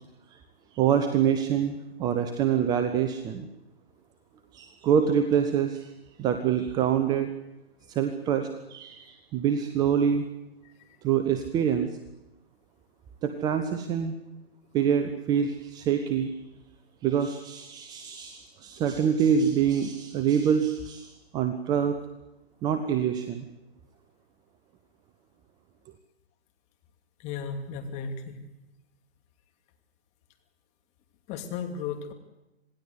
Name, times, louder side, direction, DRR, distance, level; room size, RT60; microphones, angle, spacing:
voice 1, 0.8-1.7 2.0-3.4 4.5-5.8 6.2-7.3 8.0-9.0 9.3-10.2 11.0-11.9 13.2-14.1 14.7-16.3 17.0-21.1 21.3-21.9 22.6-23.4, right 8 dB, 10° right, 8 dB, 0.9 m, -25 dB
voice 2, 27.2-28.4 31.3-32.1, left 6 dB, 20° left, 5 dB, 2.8 m, -35 dB
26.5 x 19.0 x 8.1 m, 0.96 s
figure-of-eight pair, 140°, 32 cm